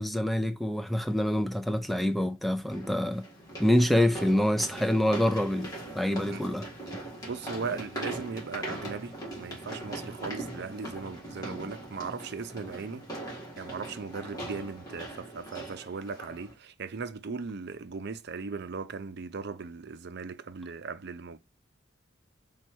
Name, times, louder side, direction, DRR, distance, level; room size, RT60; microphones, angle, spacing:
voice 1, 0.0-3.2 3.6-6.7 11.5-11.6, left 1 dB, ahead, 0.4 m, -26 dB
sound 1, 0.7-0.8 2.7-16.5, right 1 dB, 20° left, 1.8 m, -41 dB
voice 2, 7.0-21.4, right 4 dB, 60° right, 0.5 m, -38 dB
4.3 x 2.3 x 4.5 m
head